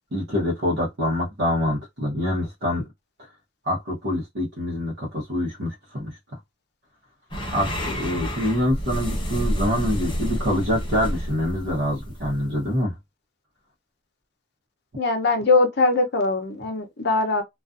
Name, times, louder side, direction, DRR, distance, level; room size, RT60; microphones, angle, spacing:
voice 1, 0.1-2.8 3.7-6.1 7.5-12.9, left 1 dB, 60° right, 0.9 m, -25 dB
sound 1, 7.3-12.8, equal, 25° left, 0.9 m, -29 dB
voice 2, 15.0-17.4, left 3 dB, 55° left, 0.7 m, -21 dB
2.4 x 2.4 x 2.4 m
head